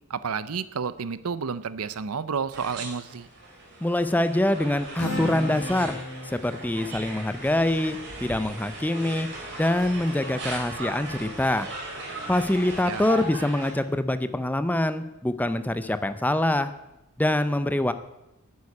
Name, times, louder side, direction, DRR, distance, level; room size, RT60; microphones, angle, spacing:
voice 1, 0.1-3.3 12.8-13.1, right 6 dB, 85° right, 16 dB, 0.6 m, -31 dB
sound 1, 2.5-13.7, right 2 dB, 55° right, 4.5 m, -38 dB
voice 2, 3.8-6.0 6.2-9.3 9.6-11.7 12.3-16.7 17.2-17.9, left 1 dB, 10° left, 12 dB, 0.5 m, -25 dB
Acoustic guitar, 5.0-8.6, left 1 dB, 85° left, 3.3 m, -36 dB
11.0 x 9.6 x 8.5 m, 0.94 s
head